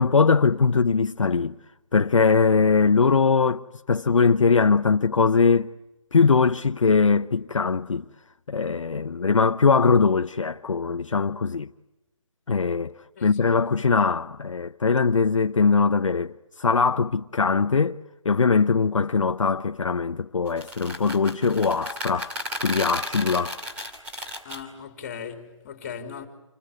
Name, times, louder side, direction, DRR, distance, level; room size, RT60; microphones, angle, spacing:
voice 1, 0.0-1.6 1.9-5.7 6.1-8.1 8.5-11.7 12.5-18.0 18.2-23.6, left 5 dB, 75° left, 0.9 m, -21 dB
sound 1, 20.5-24.6, left 1 dB, 10° right, 2.7 m, -33 dB
voice 2, 24.4-26.3, left 7 dB, 25° left, 3.3 m, -38 dB
28.0 x 20.5 x 9.7 m
figure-of-eight pair, 165°, 17 cm